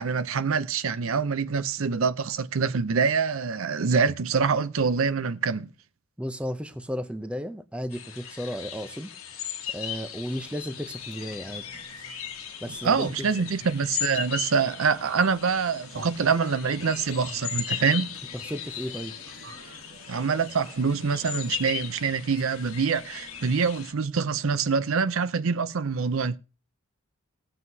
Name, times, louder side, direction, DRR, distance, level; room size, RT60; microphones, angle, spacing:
voice 1, 0.0-5.7 12.8-18.2 20.1-26.4, right 5 dB, 65° right, 0.5 m, -25 dB
voice 2, 6.2-9.1 9.7-11.7 12.6-13.5 18.3-19.2, equal, 5° right, 0.5 m, -34 dB
sound 1, 7.9-23.9, left 9 dB, 75° left, 1.2 m, -37 dB
sound 2, 10.3-23.8, right 2 dB, 50° right, 1.4 m, -53 dB
sound 3, 12.6-14.1 15.0-15.4 15.9-16.1 16.7-18.0 18.5-18.6 19.3-20.2, right 3 dB, 85° right, 1.9 m, -45 dB
19.5 x 7.7 x 2.7 m
head